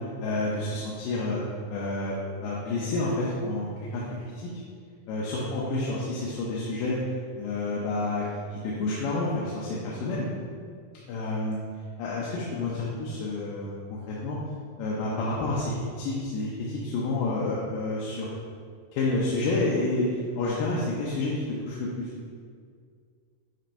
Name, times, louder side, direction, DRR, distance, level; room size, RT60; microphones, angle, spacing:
voice 1, 0.2-1.4 1.7-4.0 4.4-4.5 5.1-7.0 7.4-8.2 8.5-10.3 11.1-11.6 12.0-13.8 14.1-14.4 14.8-18.3 18.9-22.1, left 2 dB, 80° left, -6 dB, 2.4 m, -29 dB
9.3 x 5.6 x 2.6 m, 2.1 s
omnidirectional pair, 4.0 m